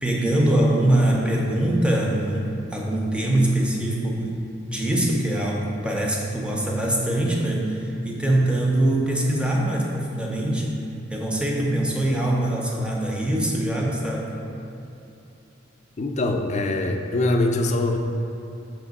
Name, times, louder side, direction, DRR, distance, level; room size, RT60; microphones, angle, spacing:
voice 1, 0.0-4.4 4.7-10.8 11.1-14.4, right 1 dB, 5° right, -2 dB, 0.6 m, -23 dB
voice 2, 16.0-18.0, left 2 dB, 35° left, 4 dB, 0.4 m, -23 dB
5.9 x 3.1 x 5.2 m, 2.8 s
head